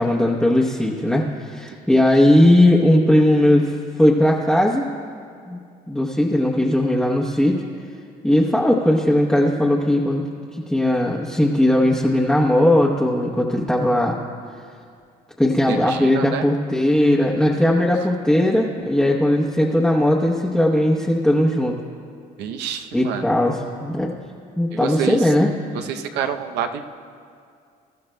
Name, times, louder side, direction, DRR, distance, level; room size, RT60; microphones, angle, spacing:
voice 1, 0.0-4.9 5.5-5.6 5.9-7.6 8.2-14.2 15.4-21.8 22.9-24.1 24.6-25.5, left 1 dB, 5° left, -3 dB, 0.8 m, -18 dB
voice 2, 15.7-16.4 22.4-23.3 24.7-25.3 25.7-26.9, right 8 dB, 85° right, 7 dB, 0.7 m, -28 dB
22.5 x 12.5 x 2.2 m, 2.3 s
cardioid pair, 110°, 17 cm